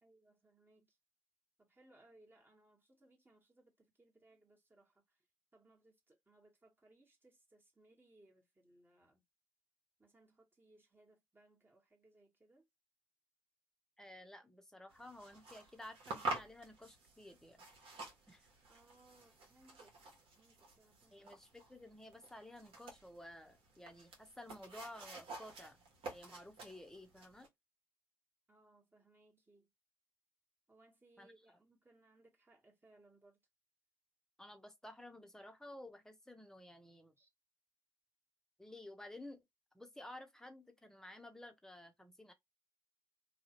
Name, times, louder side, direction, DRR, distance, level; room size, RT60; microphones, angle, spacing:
voice 1, 0.0-1.0 1.6-5.2 5.5-9.2 10.0-12.6 18.7-20.0 20.3-21.3 28.5-29.7 30.7-33.4 37.2-37.3, right 2 dB, 20° right, 1.5 m, -67 dB
voice 2, 14.0-17.6 18.3-18.5 21.1-27.5 31.2-31.3 34.4-37.1 38.6-39.4 39.7-42.3, left 1 dB, 5° left, 1.0 m, -53 dB
sound 1, 14.9-27.5, right 2 dB, 60° right, 1.2 m, -49 dB
2.7 x 2.4 x 3.0 m
hypercardioid pair, 55°, 11 cm